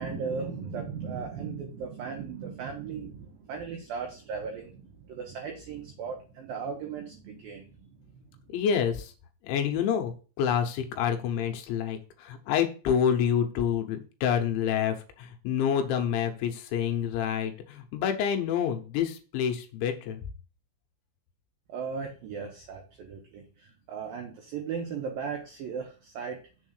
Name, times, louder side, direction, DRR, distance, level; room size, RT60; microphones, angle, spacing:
voice 1, 0.0-8.2 21.7-26.4, right 5 dB, 85° right, 2 dB, 2.0 m, -37 dB
voice 2, 8.5-9.1 9.4-10.1 10.4-20.2, left 8 dB, 80° left, 5 dB, 3.2 m, -28 dB
7.1 x 3.6 x 6.4 m, 0.36 s
omnidirectional pair, 5.6 m